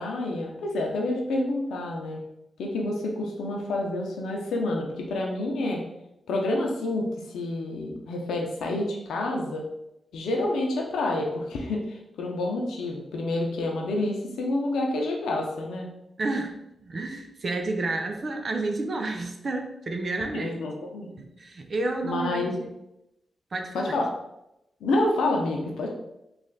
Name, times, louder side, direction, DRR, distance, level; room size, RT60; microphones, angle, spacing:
voice 1, 0.0-2.2 2.6-5.8 6.3-9.6 10.1-15.9 20.3-21.2 22.0-22.6 23.7-24.1 24.8-25.9, left 2 dB, 85° left, 1 dB, 0.7 m, -28 dB
voice 2, 16.2-16.6 16.8-20.6 21.4-22.7 23.5-24.0, right 2 dB, 50° right, 4 dB, 0.5 m, -30 dB
3.3 x 2.5 x 3.9 m, 0.86 s
supercardioid pair, 50°, 0 cm